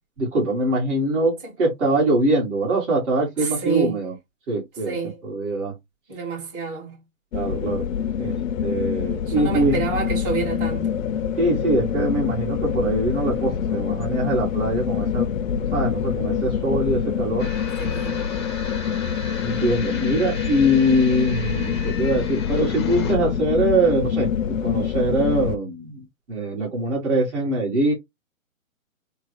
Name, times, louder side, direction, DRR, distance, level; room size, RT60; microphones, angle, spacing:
voice 1, 0.2-4.2 4.5-5.0 5.2-5.8 7.3-7.9 8.2-9.8 11.4-15.3 15.7-17.5 19.4-24.3 24.6-27.9, right 1 dB, 55° right, 1.9 m, -23 dB
voice 2, 3.4-4.0 4.9-5.2 6.1-7.0 9.3-11.0 17.8-18.3, right 4 dB, 40° right, 2.0 m, -28 dB
sound 1, 7.3-25.6, left 8 dB, 70° left, 0.5 m, -26 dB
sound 2, 17.4-23.1, left 3 dB, 20° left, 0.5 m, -35 dB
3.6 x 2.0 x 3.2 m
hypercardioid pair, 155°, 42 cm